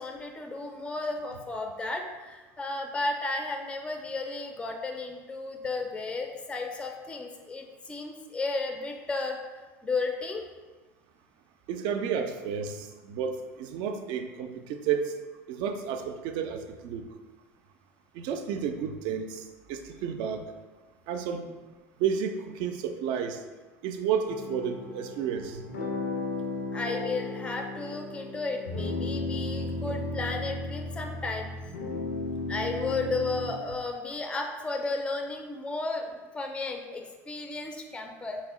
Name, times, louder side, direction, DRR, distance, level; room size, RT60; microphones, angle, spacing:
voice 1, 0.0-9.4 9.8-10.4 26.7-31.5 32.5-38.4, left 3 dB, 10° left, 4 dB, 0.4 m, -33 dB
voice 2, 11.7-15.1 15.5-17.1 18.1-20.4 21.1-21.5 22.0-23.4 23.8-25.6, right 7 dB, 60° right, 6 dB, 0.4 m, -31 dB
sound 1, 24.3-33.5, left 2 dB, 90° left, 0.5 m, -35 dB
4.2 x 2.0 x 3.6 m, 1.2 s
hypercardioid pair, 85°, 8 cm